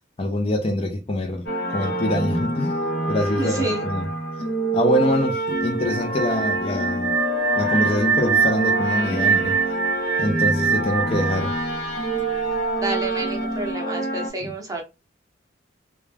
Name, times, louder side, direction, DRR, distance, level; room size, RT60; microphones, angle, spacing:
voice 1, 0.2-2.8 3.1-4.1 4.7-7.1 7.5-9.6 10.2-11.5 14.4-14.5, left 1 dB, 30° left, 0.4 m, -25 dB
sound 1, 1.5-14.3, right 1 dB, 75° left, 0.9 m, -26 dB
voice 2, 3.3-3.9 12.8-14.8, right 2 dB, 20° right, 0.7 m, -29 dB
sound 2, 5.5-12.4, right 7 dB, 80° right, 0.3 m, -24 dB
2.3 x 2.1 x 3.2 m
head